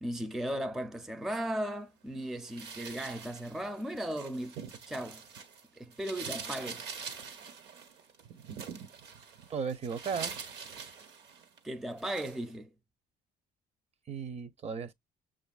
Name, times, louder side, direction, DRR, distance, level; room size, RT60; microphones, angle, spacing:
voice 1, 0.0-4.6 4.9-5.2 5.8-6.9 11.6-12.7, right 1 dB, ahead, 0.4 m, -36 dB
sound 1, 2.5-5.6 5.9-11.6 12.0-12.4, right 6 dB, 75° right, 1.4 m, -44 dB
voice 2, 9.5-10.3 14.1-14.9, right 6 dB, 40° right, 0.7 m, -35 dB
6.7 x 2.5 x 2.3 m
cardioid pair, 110°, 17 cm